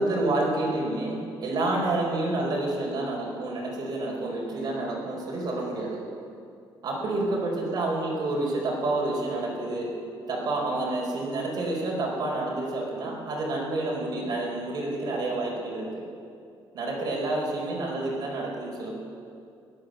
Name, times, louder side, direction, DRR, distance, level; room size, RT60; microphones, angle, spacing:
voice 1, 0.0-6.0 6.8-9.9 10.3-16.0 16.7-18.9, right 2 dB, 50° right, -2 dB, 4.4 m, -29 dB
16.5 x 10.5 x 7.7 m, 2.4 s
cardioid pair, 150°, 9 cm